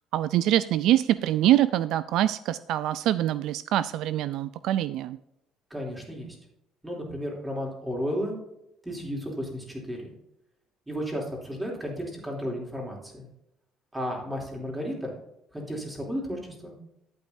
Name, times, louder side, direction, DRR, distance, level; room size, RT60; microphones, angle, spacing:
voice 1, 0.1-5.2, right 13 dB, 70° right, 15 dB, 0.3 m, -24 dB
voice 2, 5.7-6.4 6.8-8.3 8.8-10.1 10.9-13.3 13.9-15.1 15.5-16.7, equal, 10° right, -1 dB, 3.1 m, -33 dB
11.5 x 8.3 x 2.7 m, 0.82 s
cardioid pair, 125°, 0 cm